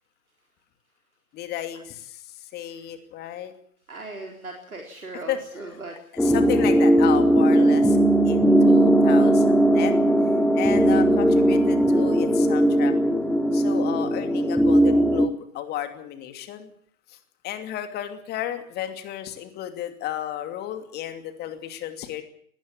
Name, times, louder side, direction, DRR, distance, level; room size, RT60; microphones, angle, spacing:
voice 1, 1.3-3.5 5.3-5.4 6.1-8.0 8.2-10.0 10.5-12.9 13.5-16.7 17.1-17.2 17.4-22.2, left 11 dB, 25° left, 8 dB, 2.7 m, -33 dB
voice 2, 3.9-6.0, right 2 dB, 75° right, 1 dB, 4.2 m, -38 dB
sound 1, 6.2-15.3, right 1 dB, 5° left, 2.0 m, -18 dB
20.0 x 17.5 x 8.7 m, 0.63 s
figure-of-eight pair, 115°, 43 cm